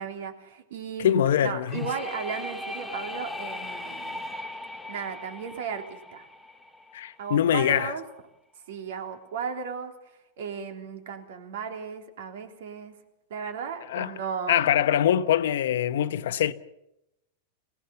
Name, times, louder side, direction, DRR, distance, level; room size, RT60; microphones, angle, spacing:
voice 1, 0.0-4.2 4.9-6.3 7.2-8.0 8.7-9.9 10.4-12.9 13.3-14.7, right 6 dB, 60° right, 3.4 m, -35 dB
voice 2, 1.0-1.9 6.9-7.9 13.9-14.1 14.5-16.5, left 10 dB, 70° left, 1.0 m, -23 dB
sound 1, 1.7-7.3, left 1 dB, 5° left, 0.8 m, -38 dB
27.0 x 17.5 x 7.1 m
supercardioid pair, 180°, 0 cm